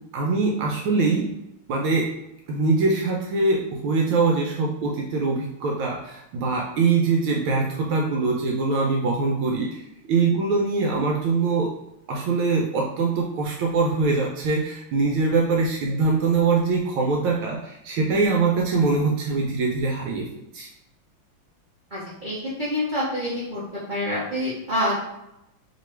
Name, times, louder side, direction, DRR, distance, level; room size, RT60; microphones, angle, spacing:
voice 1, 0.1-1.3 1.7-2.1 2.5-11.7 12.1-20.3 20.5-20.7, right 4 dB, 75° right, -1 dB, 1.4 m, -23 dB
voice 2, 21.9-23.6 23.9-25.0, left 1 dB, 40° right, -8 dB, 0.7 m, -27 dB
3.5 x 3.0 x 4.4 m, 0.87 s
omnidirectional pair, 2.4 m